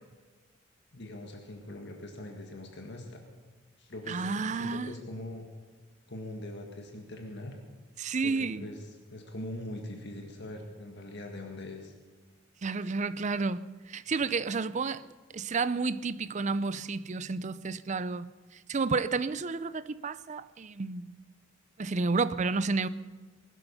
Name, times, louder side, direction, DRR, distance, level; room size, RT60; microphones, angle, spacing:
voice 1, 0.9-3.2 3.8-5.5 6.1-7.6 8.2-11.9, left 1 dB, 55° left, 1.8 m, -42 dB
voice 2, 4.1-4.9 8.0-8.7 12.6-15.1 15.3-18.3 18.7-21.1 21.8-22.9, right 4 dB, 35° right, 0.5 m, -31 dB
20.5 x 12.0 x 5.6 m
head